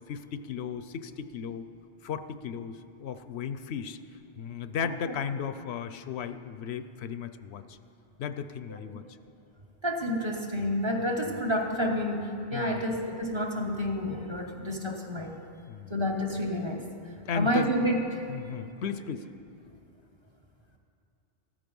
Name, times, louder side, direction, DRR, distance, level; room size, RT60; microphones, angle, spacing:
voice 1, 0.1-1.6 2.0-4.0 4.4-7.8 8.2-9.0 11.3-11.4 12.5-12.9 15.7-15.9 17.3-17.7 18.3-19.3, left 7 dB, 75° left, 11 dB, 0.9 m, -35 dB
voice 2, 9.8-15.4 15.9-16.9 17.3-18.2, equal, 25° right, 1 dB, 1.2 m, -29 dB
14.5 x 14.0 x 5.4 m, 2.6 s
omnidirectional pair, 1.1 m